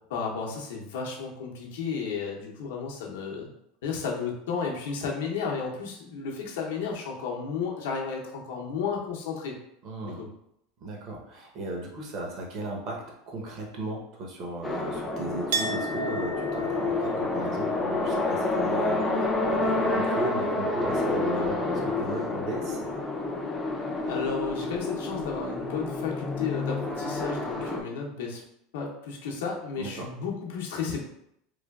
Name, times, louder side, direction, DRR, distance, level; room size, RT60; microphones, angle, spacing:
voice 1, 0.1-3.5 3.8-9.5 10.0-10.3 24.1-28.4 28.7-31.0, left 5 dB, 90° left, -1 dB, 0.6 m, -33 dB
voice 2, 9.8-10.2 10.8-22.8 29.8-30.1, right 2 dB, 40° right, 0 dB, 0.7 m, -36 dB
sound 1, 14.6-27.8, left 2 dB, 10° left, 0.3 m, -29 dB
Chink clink, 15.5-21.0 21.3-22.2, right 3 dB, 90° right, 0.4 m, -38 dB
3.1 x 2.2 x 2.3 m, 0.77 s
supercardioid pair, 155°, 0 cm